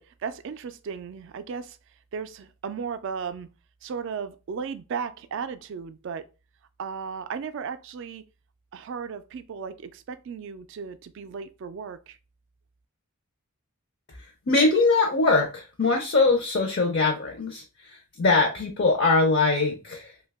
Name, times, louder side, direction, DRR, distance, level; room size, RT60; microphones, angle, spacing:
voice 1, 0.0-1.8 2.1-3.5 3.8-6.3 6.8-8.2 8.7-12.2, right 6 dB, 55° right, 0.3 m, -35 dB
voice 2, 14.2-20.1, left 3 dB, 50° left, 0.5 m, -22 dB
2.7 x 2.2 x 3.3 m
head